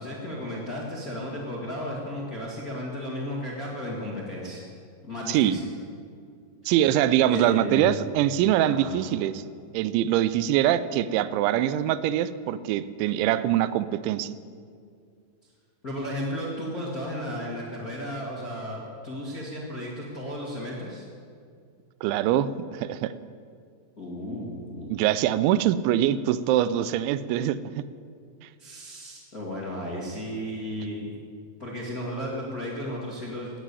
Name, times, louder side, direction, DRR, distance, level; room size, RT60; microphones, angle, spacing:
voice 1, 0.0-4.6 5.0-5.6 7.2-7.9 8.7-8.9 15.8-21.0 24.0-25.0 28.6-31.1 31.6-33.5, left 1 dB, 35° left, -3 dB, 1.4 m, -34 dB
voice 2, 5.3-5.6 6.7-9.4 9.7-14.3 22.0-23.1 24.9-27.6, right 12 dB, 90° right, 15 dB, 3.0 m, -23 dB
17.0 x 8.2 x 9.8 m, 2.2 s
omnidirectional pair, 5.2 m